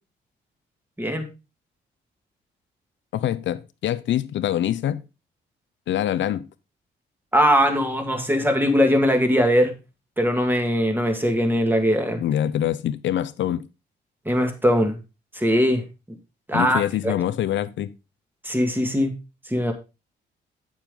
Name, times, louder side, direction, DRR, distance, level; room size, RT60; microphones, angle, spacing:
voice 1, 3.1-5.0 5.9-6.5 12.2-13.7 16.5-17.9, left 11 dB, 70° left, 0.8 m, -25 dB
voice 2, 7.3-9.7 10.2-12.2 14.3-15.0 15.3-15.8 16.5-17.1 18.4-19.2 19.5-19.7, equal, 10° right, 2.1 m, -20 dB
8.9 x 7.3 x 3.8 m
cardioid pair, 90°, 20 cm